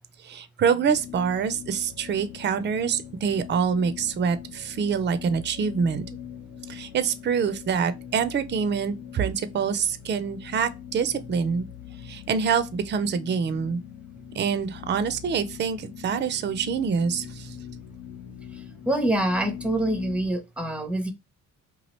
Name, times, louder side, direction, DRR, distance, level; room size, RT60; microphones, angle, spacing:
voice 1, 0.2-6.1 6.7-11.7 12.0-13.8 14.3-17.5, right 6 dB, 35° right, 0.5 m, -26 dB
sound 1, 0.8-20.3, left 9 dB, 90° left, 1.0 m, -42 dB
voice 2, 18.5-21.1, right 1 dB, 5° right, 0.7 m, -26 dB
2.9 x 2.3 x 3.0 m
cardioid pair, 90°, 30 cm